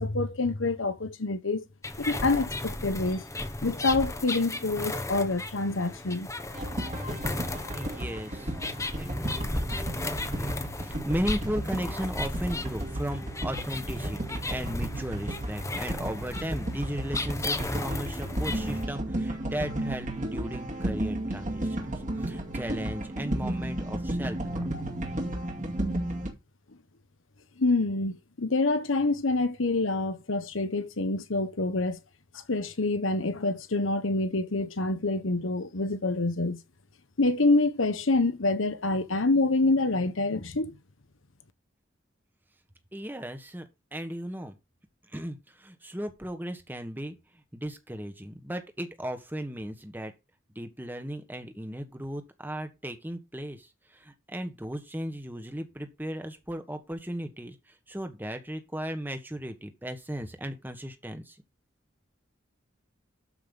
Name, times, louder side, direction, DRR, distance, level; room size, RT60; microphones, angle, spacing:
voice 1, 0.0-1.7 2.0-3.2 3.6-6.3 27.6-32.0 32.5-36.6 37.2-40.7, left 2 dB, 80° left, 1.2 m, -26 dB
sound 1, 1.8-18.8, left 2 dB, 15° left, 1.0 m, -35 dB
sound 2, 6.5-26.3, right 1 dB, 40° right, 2.2 m, -33 dB
voice 2, 7.7-8.6 8.9-9.5 9.8-24.6 42.9-43.6 43.9-44.6 45.1-47.1 47.5-50.1 50.5-61.4, equal, 10° right, 1.4 m, -36 dB
12.5 x 5.4 x 4.0 m
head